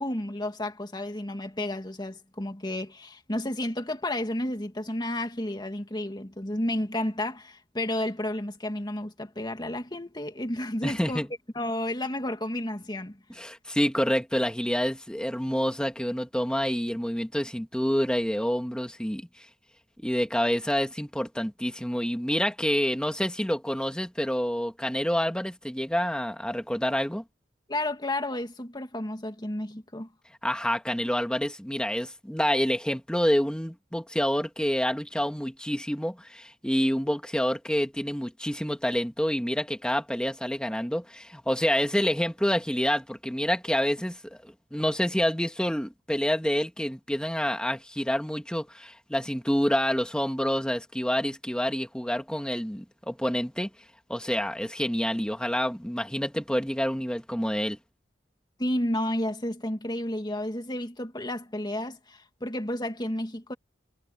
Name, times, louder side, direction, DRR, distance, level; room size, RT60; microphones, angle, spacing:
voice 1, 0.0-11.2 11.5-13.2 27.7-30.1 58.6-63.5, left 1 dB, 25° left, 2.2 m, -31 dB
voice 2, 10.8-11.3 13.3-19.3 20.0-27.2 30.4-53.7 54.1-57.8, equal, 5° left, 2.2 m, -28 dB
head